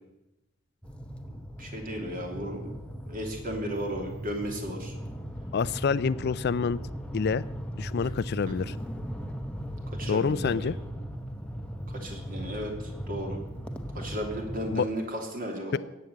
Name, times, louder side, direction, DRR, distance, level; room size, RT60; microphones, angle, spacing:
sound 1, 0.8-14.8, equal, 5° left, 1.0 m, -38 dB
voice 1, 1.6-2.7 3.0-4.9 8.5-8.7 10.0-10.5 11.9-13.4 13.9-15.8, equal, 45° right, 2 dB, 3.1 m, -35 dB
voice 2, 5.5-6.8 7.1-7.5 7.8-8.8 10.1-10.8 14.7-14.9 15.7-15.8, left 5 dB, 50° left, 17 dB, 0.4 m, -27 dB
16.5 x 7.8 x 8.1 m, 0.95 s
head